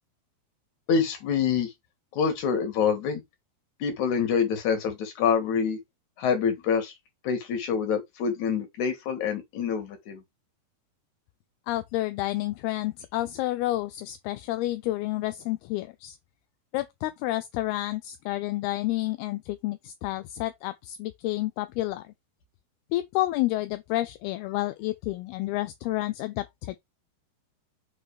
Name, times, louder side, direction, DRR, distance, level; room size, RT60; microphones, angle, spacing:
voice 1, 0.9-1.7 2.1-3.2 3.8-5.8 6.2-6.9 7.2-10.2, left 6 dB, 50° left, 3.0 m, -26 dB
voice 2, 11.7-16.2 16.7-22.0 22.9-26.8, left 17 dB, 80° left, 2.4 m, -30 dB
6.2 x 4.0 x 4.8 m
omnidirectional pair, 4.8 m